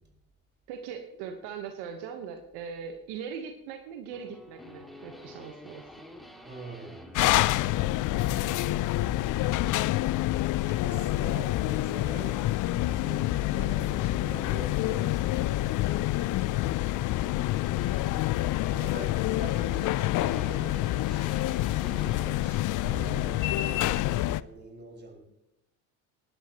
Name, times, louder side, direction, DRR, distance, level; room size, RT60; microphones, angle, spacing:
voice 1, 0.7-5.9, right 7 dB, 75° right, 6 dB, 1.3 m, -40 dB
sound 1, 4.1-22.4, left 2 dB, ahead, 2.2 m, -50 dB
voice 2, 6.4-7.2 9.2-9.9 10.7-15.8 16.2-17.6 18.7-25.3, right 2 dB, 25° right, 0 dB, 5.3 m, -44 dB
sound 2, 7.1-24.4, left 16 dB, 50° left, 0.5 m, -27 dB
19.0 x 12.0 x 3.0 m, 0.83 s
supercardioid pair, 80°, 41 cm